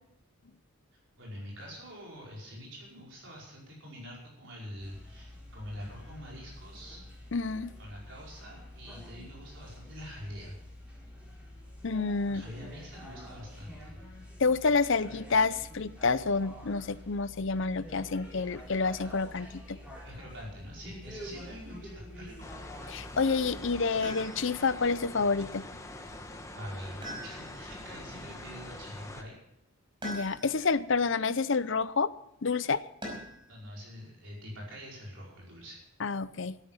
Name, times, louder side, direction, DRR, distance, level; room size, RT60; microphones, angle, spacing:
voice 1, 1.2-7.0 7.8-10.6 12.3-14.0 20.0-22.5 26.5-29.3 33.5-35.8, equal, 55° right, -4 dB, 5.2 m, -45 dB
sound 1, 4.8-23.7, left 1 dB, 5° right, 4.6 m, -47 dB
voice 2, 7.3-7.7 11.8-12.4 14.4-19.8 22.9-25.7 30.0-32.1 32.4-32.8 36.0-36.6, left 4 dB, 55° left, 15 dB, 0.6 m, -28 dB
sound 2, 22.4-29.2, left 1 dB, 15° left, 1.2 m, -44 dB
sound 3, 24.0-24.7 27.0-27.8 30.0-30.7 33.0-33.5 35.2-35.9, equal, 20° right, 5.2 m, -42 dB
13.5 x 13.0 x 5.7 m, 0.79 s
head